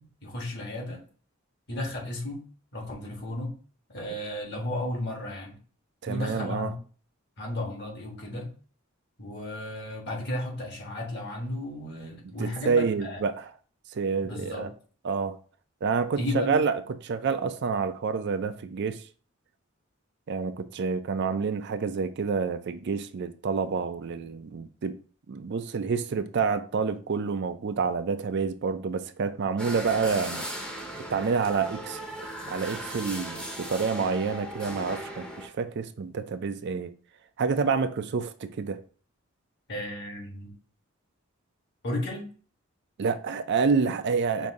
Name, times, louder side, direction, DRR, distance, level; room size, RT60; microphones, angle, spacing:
voice 1, 0.2-1.0 1.7-2.4 2.7-3.6 3.9-5.6 6.1-6.7 7.4-8.5 9.2-13.2 14.2-14.7 16.2-16.6 39.7-40.5 41.8-42.3, left 1 dB, 55° left, 1.6 m, -34 dB
voice 2, 6.0-6.7 12.4-13.5 13.9-14.7 15.0-15.4 15.8-19.0 20.3-25.0 25.3-30.4 31.1-32.0 32.5-36.9 37.4-38.8 43.0-44.5, right 5 dB, 55° right, 0.4 m, -28 dB
sound 1, 29.6-35.5, equal, 5° left, 0.7 m, -37 dB
5.3 x 2.6 x 3.6 m
head